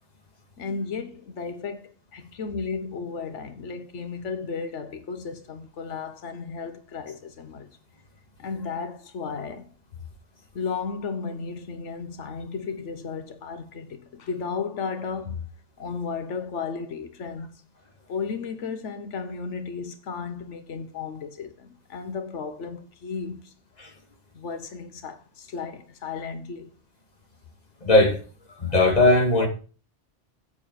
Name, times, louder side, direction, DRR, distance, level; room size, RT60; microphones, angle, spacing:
voice 1, 0.6-7.7 8.4-9.7 10.5-15.5 15.8-17.6 18.1-23.5 24.3-26.7, left 5 dB, 85° left, 1.3 m, -34 dB
voice 2, 27.8-28.2 28.6-29.5, left 2 dB, 35° left, 2.1 m, -18 dB
9.2 x 8.4 x 4.7 m
omnidirectional pair, 1.2 m